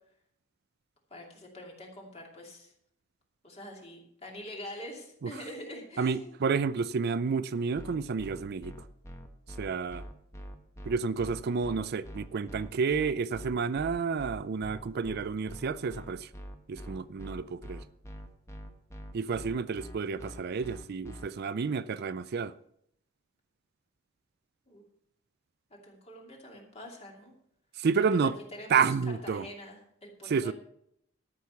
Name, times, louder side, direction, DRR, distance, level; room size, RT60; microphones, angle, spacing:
voice 1, 1.1-2.7 3.4-6.4 24.7-24.8 25.7-27.3 28.0-30.5, left 1 dB, 30° left, 2.7 m, -45 dB
voice 2, 6.0-8.7 9.6-10.0 10.9-16.3 16.7-17.8 19.1-22.5 27.8-28.3 28.7-29.5 30.3-30.5, right 5 dB, 50° right, 0.4 m, -30 dB
sound 1, 7.7-21.3, equal, 15° left, 1.2 m, -44 dB
13.0 x 6.2 x 6.9 m
head